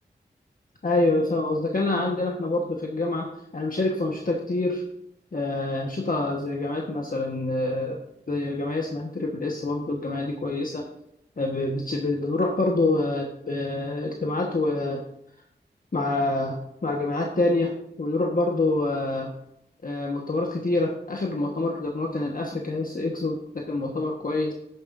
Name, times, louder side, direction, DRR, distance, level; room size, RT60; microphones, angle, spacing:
voice 1, 0.8-4.8 5.3-8.0 8.3-10.9 11.4-15.0 15.9-17.7 18.0-19.3 19.8-24.5, left 2 dB, 50° left, 0 dB, 1.4 m, -26 dB
10.0 x 9.7 x 2.6 m, 0.79 s
cardioid pair, 50°, 18 cm